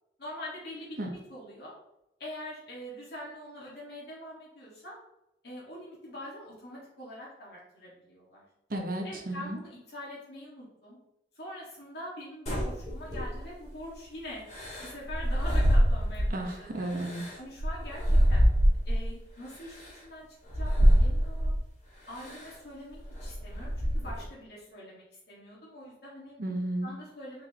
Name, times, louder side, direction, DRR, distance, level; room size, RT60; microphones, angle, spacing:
voice 1, 0.2-1.7 2.2-5.0 5.4-8.4 9.0-11.0 11.4-14.4 14.8-16.9 17.4-18.4 18.8-20.3 20.5-21.5 22.1-26.4 26.8-27.4, left 1 dB, 65° left, -6 dB, 1.8 m, -44 dB
voice 2, 8.7-9.6 16.3-17.2 26.4-26.9, right 1 dB, 55° right, 2 dB, 1.1 m, -33 dB
sound 1, 12.5-13.6 14.5-16.4 16.9-19.1 19.7-19.9 20.5-21.6 22.2-22.5 22.9-24.3, equal, 40° left, 2.4 m, -25 dB
6.5 x 4.8 x 3.0 m, 0.85 s
head